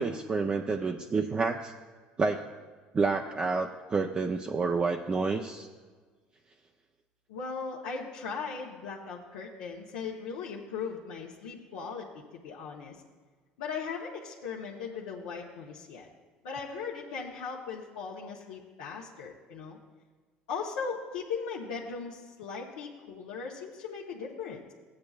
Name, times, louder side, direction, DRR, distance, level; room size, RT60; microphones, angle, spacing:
voice 1, 0.0-1.7 2.2-2.4 2.9-5.7, right 4 dB, 30° right, 3 dB, 0.5 m, -29 dB
voice 2, 7.3-12.1 12.4-13.0 13.6-16.1 16.4-19.8 20.5-24.7, left 5 dB, 85° left, -4 dB, 1.0 m, -38 dB
15.0 x 8.6 x 2.4 m, 1.4 s
supercardioid pair, 80°, 4 cm